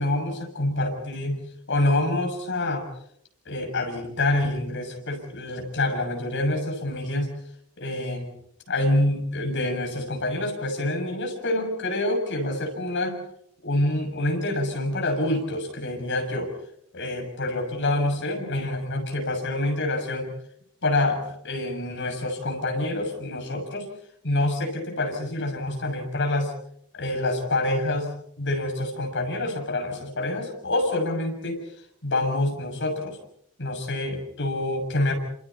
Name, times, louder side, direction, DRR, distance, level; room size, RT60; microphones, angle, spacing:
voice 1, 0.0-1.4 1.7-2.8 3.5-7.3 7.8-8.3 8.7-13.2 13.6-16.5 16.9-20.3 20.8-23.9 24.2-26.5 26.9-31.6 32.0-33.2 33.6-35.1, left 1 dB, 55° left, 2 dB, 6.8 m, -26 dB
29.5 x 27.5 x 4.2 m, 0.70 s
head